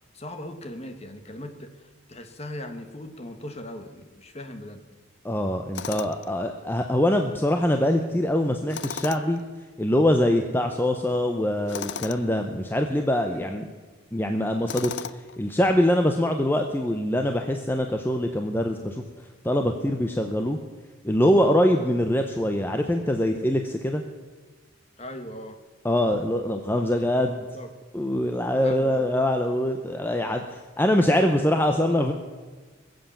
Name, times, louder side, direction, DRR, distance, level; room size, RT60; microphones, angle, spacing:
voice 1, 0.1-4.8 13.3-13.6 25.0-25.6 27.5-27.7 28.6-29.1 31.1-32.0, left 1 dB, 30° left, 7 dB, 1.4 m, -39 dB
voice 2, 5.2-9.4 9.8-13.7 14.1-19.0 19.4-20.6 21.0-24.0 25.8-27.5 27.9-32.1, left 1 dB, 10° left, 4 dB, 0.7 m, -23 dB
Tools, 5.7-6.3 8.7-9.4 11.7-12.2 14.7-15.4, left 6 dB, 55° left, 0.5 m, -35 dB
21.0 x 7.9 x 7.2 m, 1.4 s
head